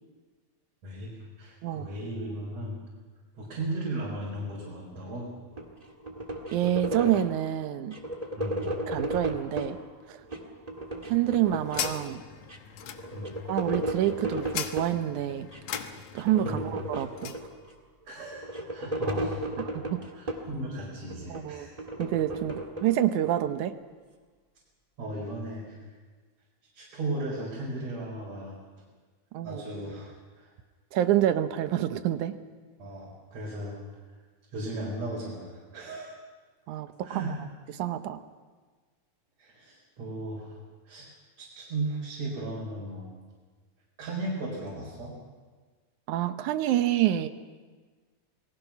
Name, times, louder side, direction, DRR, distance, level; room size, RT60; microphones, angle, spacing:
voice 1, 1.4-2.8 3.4-5.3 8.4-8.7 13.1-13.4 16.4-16.7 18.1-19.4 20.1-21.7 25.0-25.8 26.7-28.5 29.4-30.5 32.8-33.8 34.5-36.1 37.0-37.4 39.4-40.6 40.9-41.1 41.4-43.1 44.0-45.1, right 1 dB, 65° right, -5 dB, 5.8 m, -36 dB
sound 1, 5.6-7.4 7.9-9.8 10.2-12.1 12.5-12.6 12.8-15.0 15.5-15.8 16.1-17.7 18.2-20.6 21.1-23.4, right 1 dB, 15° right, 1.6 m, -35 dB
voice 2, 6.5-8.0 8.9-9.8 10.1-10.2 11.1-12.2 13.5-15.5 16.1-17.3 19.6-20.0 21.3-21.7 22.0-23.7 29.3-29.6 30.9-32.4 36.7-37.3 37.8-38.2 46.1-47.3, right 12 dB, 85° right, 10 dB, 2.4 m, -27 dB
sound 2, 10.9-17.5, left 9 dB, 80° left, 2.6 m, -40 dB
29.0 x 19.5 x 5.9 m, 1.4 s
omnidirectional pair, 3.4 m